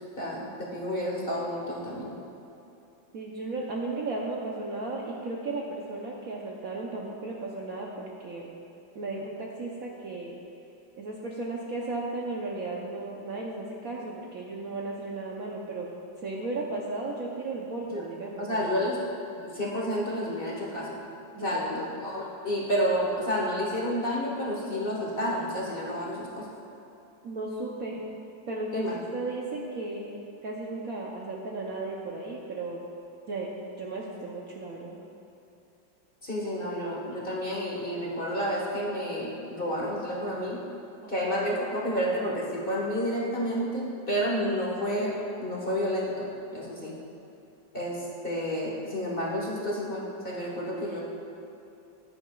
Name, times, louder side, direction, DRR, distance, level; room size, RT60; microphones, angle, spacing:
voice 1, 0.2-2.1 17.9-18.0 18.4-19.0 19.4-20.9 21.4-26.5 28.7-29.0 36.2-40.6 41.1-45.1 45.4-46.9 47.7-51.0, equal, 30° left, -4 dB, 1.4 m, -30 dB
voice 2, 3.1-8.5 8.9-10.4 11.0-15.9 16.2-18.8 21.3-21.9 27.2-28.1 28.5-28.9 29.1-30.2 30.4-32.8 33.3-33.5 33.8-35.0 41.0-41.1, right 2 dB, 60° right, -3 dB, 1.0 m, -35 dB
14.5 x 9.6 x 2.3 m, 2.8 s
omnidirectional pair, 2.1 m